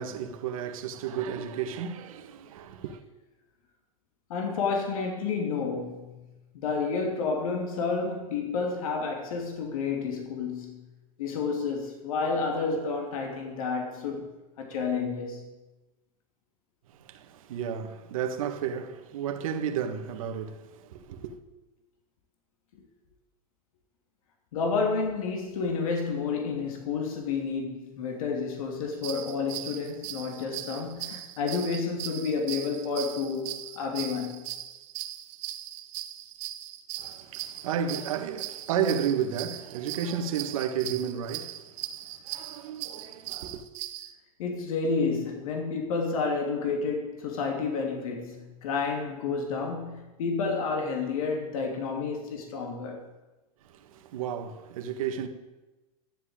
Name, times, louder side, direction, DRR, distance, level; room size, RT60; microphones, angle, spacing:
voice 1, 0.0-3.0 16.9-21.4 37.0-43.6 53.6-55.3, right 8 dB, 70° right, 1.7 m, -32 dB
voice 2, 4.3-6.2 6.5-10.8 11.2-14.3 14.6-15.5 24.5-34.5 44.4-53.1, left 4 dB, 75° left, 2.9 m, -30 dB
sound 1, 28.9-44.1, right 14 dB, 45° right, 1.2 m, -39 dB
12.5 x 7.9 x 8.9 m
supercardioid pair, 130°, 18 cm